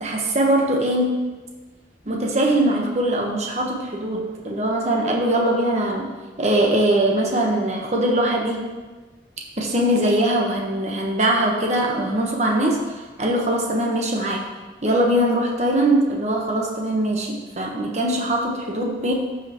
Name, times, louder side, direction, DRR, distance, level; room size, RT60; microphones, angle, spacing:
voice 1, 0.0-1.2 2.1-6.1 6.4-8.6 9.6-12.8 13.2-14.4 14.8-19.1, right 1 dB, 40° right, 0 dB, 1.1 m, -21 dB
13.0 x 5.5 x 3.0 m, 1.3 s
head